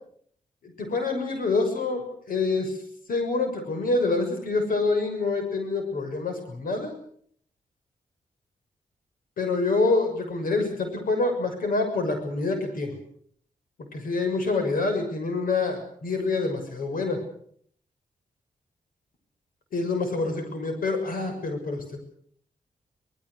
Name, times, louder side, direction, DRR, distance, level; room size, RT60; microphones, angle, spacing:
voice 1, 0.6-2.8 3.1-6.9 9.4-13.0 13.9-17.2 19.7-22.0, left 3 dB, 85° left, 6 dB, 6.4 m, -26 dB
26.0 x 19.5 x 6.6 m, 0.62 s
cardioid pair, 70°, 14 cm